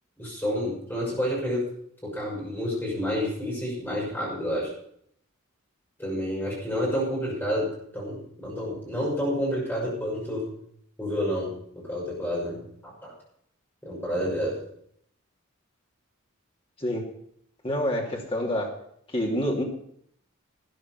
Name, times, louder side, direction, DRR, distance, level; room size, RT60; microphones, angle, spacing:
voice 1, 0.2-1.6 2.0-4.7 6.0-7.7 7.9-10.5 11.0-13.1 13.8-14.5, equal, 10° left, -4 dB, 6.3 m, -29 dB
voice 2, 17.6-18.7 19.1-19.6, equal, 25° left, -1 dB, 2.9 m, -27 dB
13.0 x 9.9 x 6.0 m, 0.67 s
head